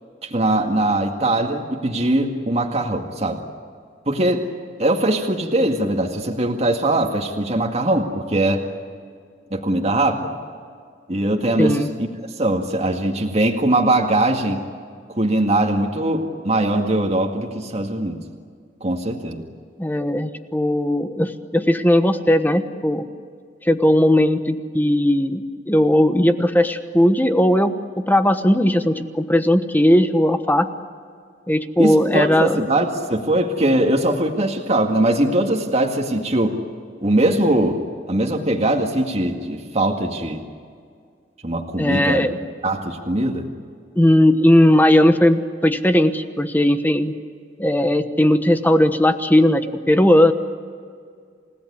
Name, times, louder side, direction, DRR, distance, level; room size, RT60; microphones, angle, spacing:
voice 1, 0.2-3.4 4.1-4.4 4.8-8.7 9.5-10.3 11.1-12.1 12.4-14.6 15.2-18.2 18.8-19.4 31.8-36.6 37.0-37.8 38.1-40.4 41.4-42.3 42.6-43.4, right 1 dB, 35° right, 2 dB, 2.0 m, -21 dB
voice 2, 11.6-11.9 19.8-23.0 23.6-30.7 31.5-32.6 41.8-42.4 44.0-47.1 47.6-50.3, left 1 dB, 10° left, 9 dB, 1.2 m, -17 dB
29.5 x 17.5 x 9.7 m, 2.1 s
head